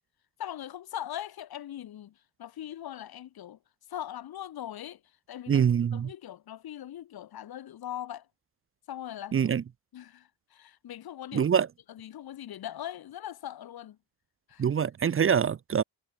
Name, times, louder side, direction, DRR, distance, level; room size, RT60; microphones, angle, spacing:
voice 1, 0.4-3.6 3.9-5.0 5.3-5.6 5.9-8.3 8.9-9.5 9.9-11.5 11.9-14.0 14.5-14.7, left 11 dB, 65° left, 7.2 m, -40 dB
voice 2, 5.5-6.1 9.3-9.6 11.3-11.7 14.6-15.8, right 7 dB, 35° right, 0.9 m, -24 dB
cardioid pair, 165°, 39 cm